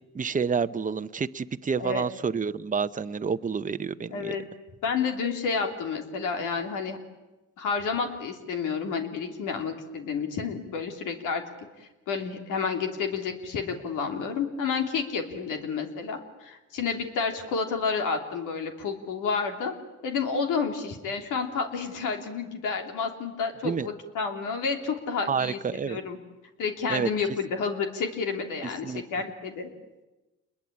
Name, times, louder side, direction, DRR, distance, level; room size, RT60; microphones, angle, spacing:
voice 1, 0.1-4.3 23.6-23.9 25.3-26.0 26.9-27.1 28.8-29.0, right 6 dB, 25° right, 12 dB, 0.8 m, -29 dB
voice 2, 4.1-4.4 4.8-7.0 7.6-11.4 11.8-19.7 20.0-26.2 26.6-29.7, left 5 dB, 90° left, 4 dB, 3.2 m, -30 dB
28.0 x 21.5 x 8.7 m, 1.1 s
cardioid pair, 90°, 30 cm